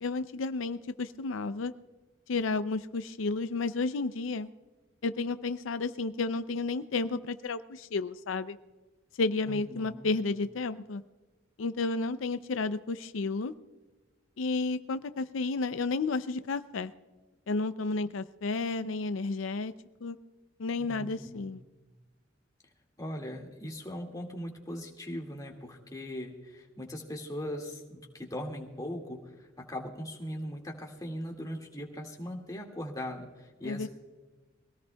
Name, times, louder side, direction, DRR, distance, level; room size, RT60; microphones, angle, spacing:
voice 1, 0.0-1.7 2.3-4.5 5.0-8.6 9.2-11.0 11.6-13.5 14.4-16.9 17.5-19.7 20.0-20.2 20.6-21.6 33.6-33.9, left 3 dB, 85° left, 11 dB, 0.5 m, -32 dB
voice 2, 9.5-10.1 20.9-21.5 23.0-33.9, equal, 20° left, 0 dB, 2.0 m, -40 dB
23.5 x 17.5 x 2.3 m, 1.2 s
head